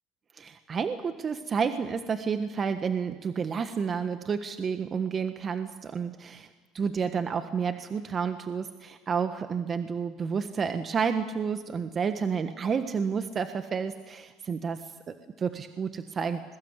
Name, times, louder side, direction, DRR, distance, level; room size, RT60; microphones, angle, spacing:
voice 1, 0.3-6.5 6.7-16.4, right 6 dB, 35° right, 8 dB, 1.4 m, -30 dB
26.5 x 22.0 x 8.2 m, 1.2 s
supercardioid pair, 95°, 0 cm